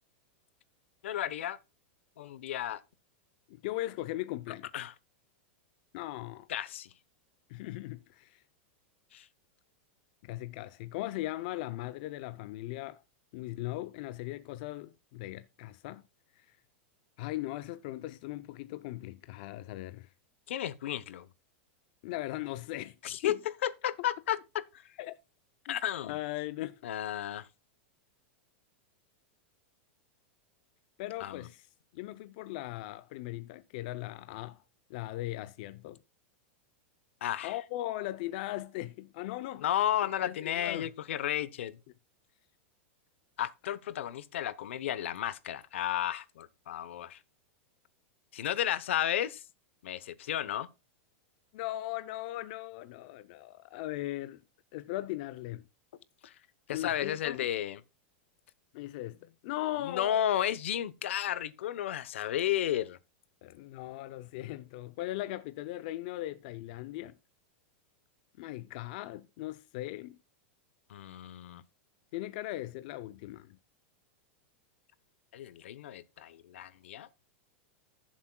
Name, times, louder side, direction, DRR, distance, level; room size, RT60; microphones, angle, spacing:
voice 1, 1.0-1.6 2.2-2.8 4.7-4.9 6.5-6.9 9.1-9.3 20.5-21.3 23.0-23.4 23.6-24.9 25.7-26.2 26.8-27.5 31.2-31.5 37.2-37.6 39.6-41.8 43.4-47.2 48.3-49.4 49.8-50.7 56.2-56.3 56.7-57.8 59.8-63.0 70.9-71.6 75.3-77.1, left 11 dB, 80° left, 0.9 m, -33 dB
voice 2, 3.5-4.9 5.9-6.5 7.5-8.4 10.2-13.0 13.3-16.0 16.4-16.6 17.2-20.1 22.0-23.0 23.2-23.4 25.0-25.1 25.7-25.8 26.0-26.8 31.0-31.7 31.9-34.6 34.9-36.0 37.4-39.6 40.2-40.9 51.5-54.4 54.7-55.6 56.7-57.5 58.7-60.2 63.4-67.1 68.4-70.2 72.1-73.6, left 16 dB, 45° left, 0.5 m, -39 dB
16.0 x 7.3 x 2.2 m
supercardioid pair, 170°, 7 cm